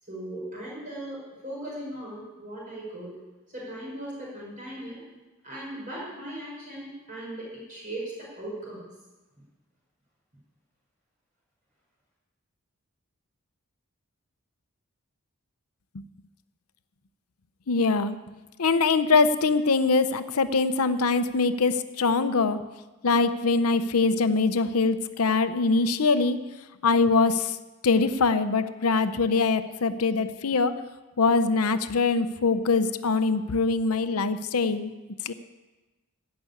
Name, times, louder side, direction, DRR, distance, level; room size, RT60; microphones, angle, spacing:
voice 1, 0.1-3.1 3.5-5.0 5.4-8.9, right 1 dB, 35° right, -5 dB, 5.4 m, -38 dB
voice 2, 17.7-18.2 18.6-22.6 23.0-26.4 26.8-27.6 27.8-30.7 31.2-34.9 35.2-35.3, left 4 dB, 85° left, 11 dB, 0.7 m, -23 dB
16.0 x 6.1 x 8.3 m, 1.2 s
head